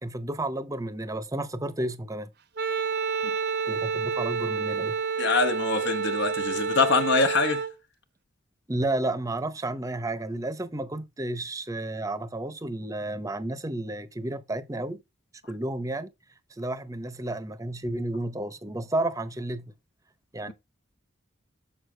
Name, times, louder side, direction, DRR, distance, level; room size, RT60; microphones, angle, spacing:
voice 1, 0.0-2.3 3.7-5.0 8.7-15.0 15.5-16.1 16.6-19.6 20.3-20.5, right 1 dB, 15° right, 0.7 m, -31 dB
Wind instrument woodwind instrument, 2.6-7.7, right 5 dB, 55° right, 0.7 m, -29 dB
voice 2, 5.2-7.6, left 4 dB, 60° left, 1.0 m, -24 dB
7.2 x 6.5 x 3.3 m
head